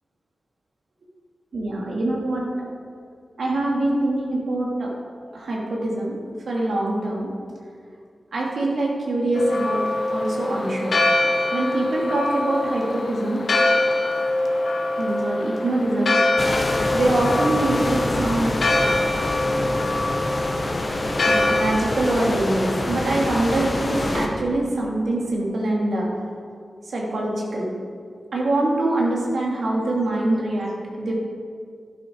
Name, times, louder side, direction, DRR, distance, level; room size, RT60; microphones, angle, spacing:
voice 1, 1.5-2.5 3.4-4.9 5.3-6.2 6.5-7.3 8.3-9.8 10.1-11.0 11.5-13.4 15.0-16.1 16.9-18.5 21.3-26.1 26.9-27.7 28.3-30.7 31.0-31.1, right 2 dB, 90° right, -3 dB, 2.8 m, -24 dB
Church bell, 9.3-21.7, left 2 dB, 70° left, 1.3 m, -24 dB
sound 1, 16.4-24.3, left 1 dB, 40° left, 1.4 m, -26 dB
12.0 x 11.5 x 4.8 m, 2.2 s
wide cardioid pair, 105°, 0 cm